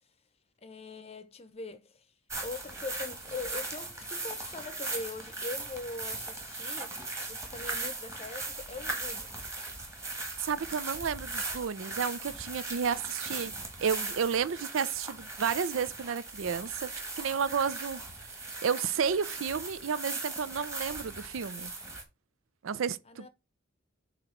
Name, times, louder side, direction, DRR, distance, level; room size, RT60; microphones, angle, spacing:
voice 1, 0.6-2.1 2.4-7.0 7.3-9.4 23.1-23.3, left 3 dB, 30° left, 0.7 m, -41 dB
sound 1, 2.3-22.0, right 3 dB, 15° right, 1.5 m, -39 dB
voice 2, 10.4-13.5 13.8-16.9 17.2-18.0 18.6-21.7 22.6-23.3, right 6 dB, 75° right, 0.5 m, -31 dB
7.8 x 3.0 x 4.5 m
head